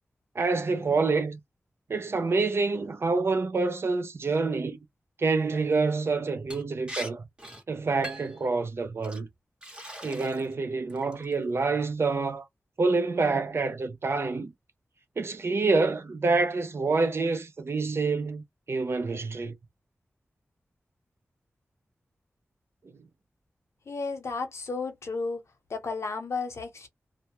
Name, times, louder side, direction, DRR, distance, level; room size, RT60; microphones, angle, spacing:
voice 1, 0.4-1.4 1.9-4.8 5.2-7.2 7.7-9.3 10.0-12.4 12.8-14.5 15.2-19.5, right 3 dB, 60° right, 0.5 m, -27 dB
Liquid, 6.5-6.6 6.9-7.1 7.4-7.6 8.0-8.4 9.0-9.2 9.6-10.5 10.9-11.3, equal, 20° right, 1.0 m, -40 dB
voice 2, 23.9-25.4 25.7-26.9, left 4 dB, 70° left, 0.9 m, -33 dB
2.2 x 2.1 x 2.8 m
wide cardioid pair, 90°, 5 cm